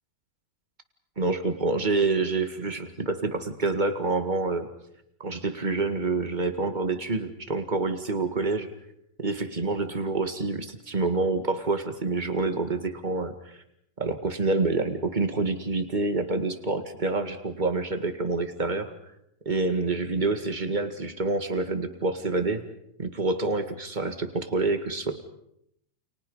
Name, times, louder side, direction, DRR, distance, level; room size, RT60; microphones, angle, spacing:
voice 1, 1.2-4.7 5.2-8.7 9.2-13.6 14.0-18.9 19.4-22.6 23.0-25.1, right 3 dB, 20° right, 7 dB, 1.2 m, -27 dB
30.0 x 29.5 x 5.6 m, 0.75 s
omnidirectional pair, 3.8 m